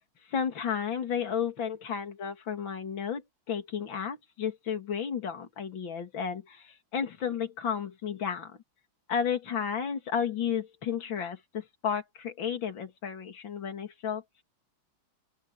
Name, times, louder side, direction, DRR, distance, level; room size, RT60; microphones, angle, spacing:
voice 1, 0.3-8.6 9.1-14.2, left 7 dB, 70° left, 3.1 m, -32 dB
open air
omnidirectional pair, 2.2 m